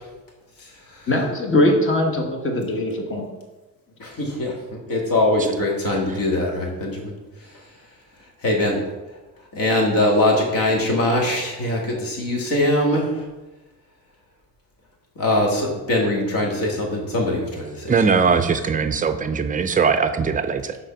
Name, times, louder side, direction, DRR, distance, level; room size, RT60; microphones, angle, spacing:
voice 1, 1.1-3.2, left 1 dB, 35° left, 2 dB, 1.2 m, -21 dB
voice 2, 4.0-7.1 8.4-8.8 9.5-13.0 15.2-17.9, left 1 dB, 65° left, -1 dB, 2.0 m, -22 dB
voice 3, 17.9-20.8, right 5 dB, 25° right, 9 dB, 0.4 m, -20 dB
6.3 x 4.1 x 5.8 m, 1.2 s
cardioid pair, 140°, 37 cm